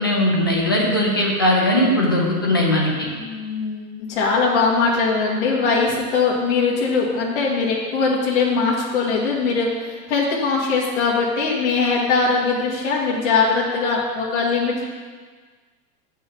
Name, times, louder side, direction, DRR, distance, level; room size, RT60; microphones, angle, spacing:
voice 1, 0.0-3.1, left 1 dB, 20° left, -3 dB, 0.4 m, -19 dB
voice 2, 3.1-14.8, left 4 dB, 50° left, -5 dB, 1.8 m, -21 dB
7.5 x 5.5 x 7.0 m, 1.5 s
supercardioid pair, 175°, 44 cm